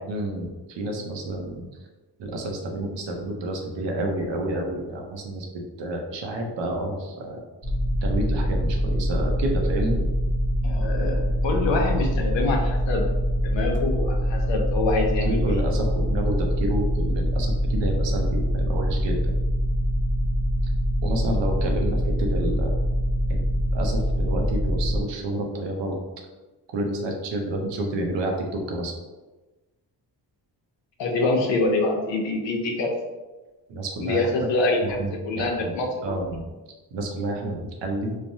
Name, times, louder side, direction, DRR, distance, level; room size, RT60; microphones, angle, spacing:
voice 1, 0.0-1.7 2.2-5.5 5.8-7.4 8.0-10.0 15.2-19.2 21.0-22.8 23.3-26.0 26.7-28.9 33.7-34.3 34.9-35.7 36.0-36.4 36.9-38.2, right 1 dB, 80° right, 2 dB, 0.7 m, -29 dB
sound 1, 7.6-25.0, equal, 20° right, 0.5 m, -24 dB
voice 2, 10.6-13.0 13.4-15.5 31.0-32.9 34.0-36.1, left 2 dB, 85° left, 1 dB, 0.7 m, -25 dB
3.2 x 2.1 x 2.6 m, 1.2 s
cardioid pair, 115°, 43 cm